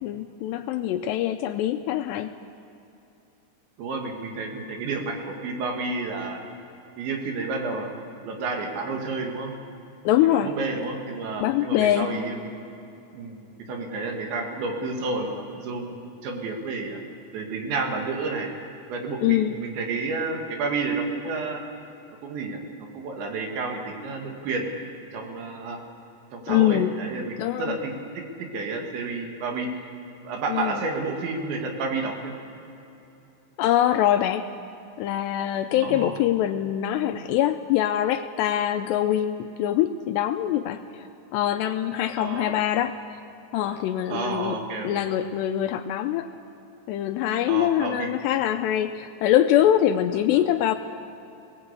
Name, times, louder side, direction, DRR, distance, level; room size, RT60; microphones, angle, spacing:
voice 1, 0.0-2.3 10.0-10.5 11.4-12.2 19.2-19.6 26.5-26.9 27.2-27.8 30.5-30.8 33.6-34.5 35.0-41.0 41.3-43.0 43.5-44.6 44.8-46.3 46.9-50.8, left 11 dB, 80° left, 8 dB, 2.5 m, -23 dB
voice 2, 3.8-6.4 7.0-9.5 10.3-12.5 13.1-17.0 17.3-18.5 18.9-21.6 22.2-24.7 25.1-25.8 26.3-29.7 30.2-32.3 35.8-36.2 42.2-42.5 44.1-45.1 47.5-48.1 50.3-50.4, right 3 dB, 75° right, 2 dB, 4.3 m, -30 dB
22.0 x 18.5 x 8.2 m, 2.9 s
omnidirectional pair, 5.3 m